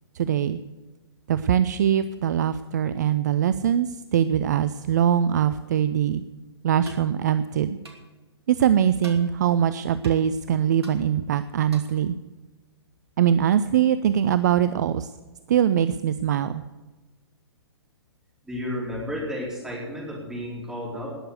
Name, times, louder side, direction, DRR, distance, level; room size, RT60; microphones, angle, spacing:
voice 1, 0.1-0.6 1.3-6.2 6.6-7.8 8.5-12.2 13.2-15.1 15.5-16.6, right 9 dB, 40° right, 13 dB, 0.5 m, -22 dB
sound 1, 6.8-7.1 7.8-8.0 9.0-9.2 10.0-10.1 10.8-11.0 11.7-12.0, right 2 dB, 70° right, 2.8 m, -43 dB
voice 2, 18.4-21.2, left 1 dB, 5° right, -5 dB, 4.4 m, -32 dB
19.0 x 6.8 x 8.1 m, 1.2 s
figure-of-eight pair, 120°, 14 cm